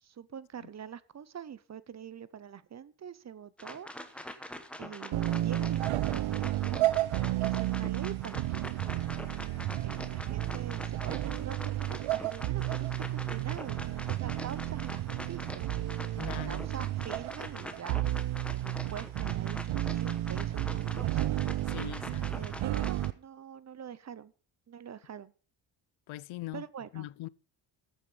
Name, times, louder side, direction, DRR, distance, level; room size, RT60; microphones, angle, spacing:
voice 1, 0.0-4.5 4.8-6.9 7.4-8.7 9.8-15.7 16.4-18.0 18.5-21.2 21.7-24.3 24.7-25.3 26.5-27.1, right 8 dB, 35° right, 0.7 m, -45 dB
sound 1, 3.6-23.1, left 1 dB, ahead, 1.0 m, -44 dB
sound 2, 5.1-23.1, right 14 dB, 85° right, 0.8 m, -32 dB
sound 3, 7.5-14.0, left 4 dB, 35° left, 5.0 m, -64 dB
voice 2, 16.2-16.6 21.7-22.5 26.1-26.7 26.9-27.3, left 16 dB, 80° left, 0.7 m, -42 dB
14.0 x 8.0 x 5.5 m
cardioid pair, 160°, 47 cm